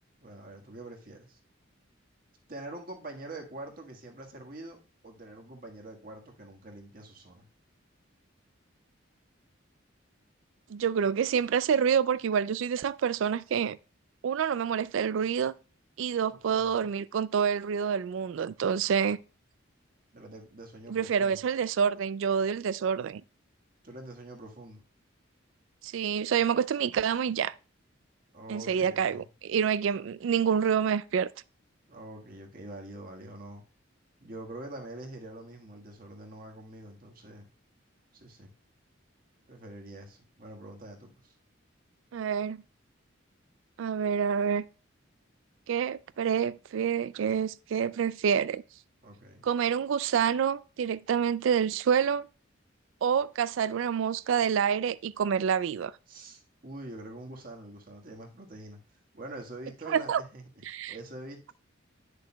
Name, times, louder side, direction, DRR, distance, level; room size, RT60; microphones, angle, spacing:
voice 1, 0.2-1.4 2.5-4.8 5.0-7.4 16.3-16.9 20.1-21.4 23.8-24.8 28.3-29.3 31.9-33.6 34.2-37.5 38.1-38.5 39.5-41.3 49.0-49.5 56.1-58.8 59.1-61.5, right 2 dB, 45° right, 1.5 m, -45 dB
voice 2, 10.7-13.8 14.2-15.5 16.0-19.2 20.9-23.2 25.8-27.5 28.5-31.3 42.1-42.6 43.8-44.6 45.7-48.6 49.4-52.2 53.0-55.9 59.9-60.2 60.6-61.0, right 7 dB, 75° right, 0.3 m, -27 dB
10.5 x 6.6 x 2.2 m
head